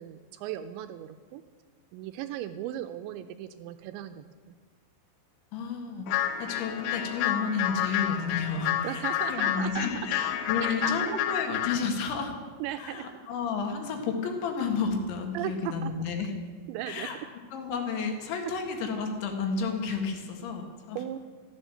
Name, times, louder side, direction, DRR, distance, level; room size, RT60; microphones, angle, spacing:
voice 1, 0.0-1.4 1.9-4.5 8.8-9.9 10.6-11.2 12.6-13.0 15.3-15.9 16.7-17.1 21.0-21.2, right 12 dB, 85° right, 9 dB, 2.7 m, -37 dB
voice 2, 5.5-12.4 12.8-16.3 16.9-17.2 17.5-21.0, left 5 dB, 70° left, 3 dB, 4.0 m, -31 dB
sound 1, 6.1-11.9, left 11 dB, 90° left, 3.4 m, -30 dB
14.5 x 12.0 x 7.8 m, 1.5 s
omnidirectional pair, 5.5 m